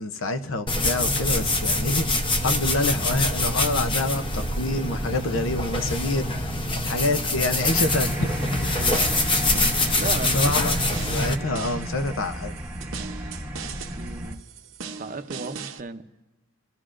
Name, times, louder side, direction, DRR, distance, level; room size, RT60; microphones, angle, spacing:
voice 1, 0.0-6.4 6.8-9.2 10.3-10.8 11.1-12.5, left 2 dB, 75° left, 0.7 m, -27 dB
sound 1, 0.7-11.3, left 2 dB, 25° left, 0.7 m, -25 dB
sound 2, 7.6-14.3, right 1 dB, 10° right, 0.9 m, -33 dB
sound 3, 7.8-15.8, right 6 dB, 75° right, 0.8 m, -40 dB
voice 2, 8.7-9.1 10.0-10.6 11.4-11.6 14.0-14.4 15.0-16.0, right 3 dB, 40° right, 0.6 m, -35 dB
27.5 x 13.0 x 2.5 m
head